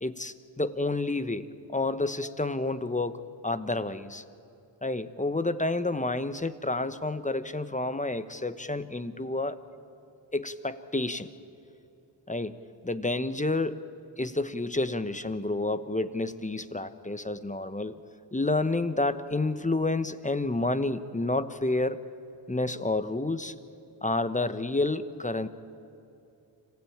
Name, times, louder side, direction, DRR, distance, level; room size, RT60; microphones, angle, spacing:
voice 1, 0.0-4.2 4.8-9.6 10.3-11.3 12.3-12.5 12.8-13.8 14.2-18.0 18.3-22.0 22.5-23.5 24.0-25.5, left 2 dB, 15° left, 12 dB, 1.1 m, -29 dB
26.0 x 15.5 x 8.8 m, 2.7 s
supercardioid pair, 40°, 49 cm